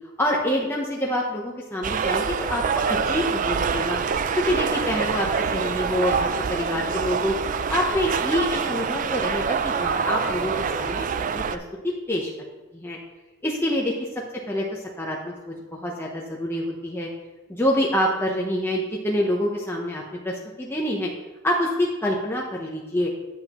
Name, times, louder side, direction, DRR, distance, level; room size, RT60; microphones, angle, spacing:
voice 1, 0.2-2.6 2.9-4.0 4.4-7.3 7.7-11.0 11.3-12.3 12.7-13.0 13.4-13.9 14.5-17.1 17.5-21.1 21.4-23.1, left 1 dB, 10° left, -2 dB, 0.7 m, -26 dB
sound 1, 1.8-11.6, right 6 dB, 40° right, 0.3 m, -25 dB
8.9 x 8.3 x 3.0 m, 1.1 s
head